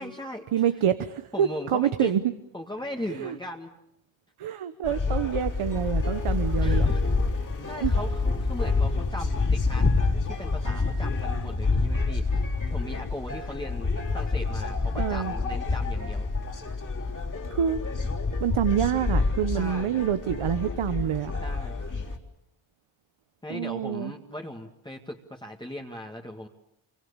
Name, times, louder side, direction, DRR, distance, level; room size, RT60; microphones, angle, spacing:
voice 1, 0.0-0.4 1.3-2.1 2.5-3.7 6.5-7.0 7.7-9.9 10.3-12.4 12.7-16.3 19.5-19.9 21.4-21.8 23.4-26.5, left 1 dB, 10° left, 1 dB, 1.9 m, -38 dB
voice 2, 0.5-2.2 3.1-3.4 4.4-6.9 7.8-7.9 14.9-15.3 17.5-17.8 18.4-21.3 23.5-24.1, right 9 dB, 90° right, 11 dB, 1.2 m, -27 dB
sound 1, 4.8-22.2, left 3 dB, 40° left, 3.7 m, -27 dB
28.0 x 24.5 x 6.9 m, 0.78 s
wide cardioid pair, 115°, 48 cm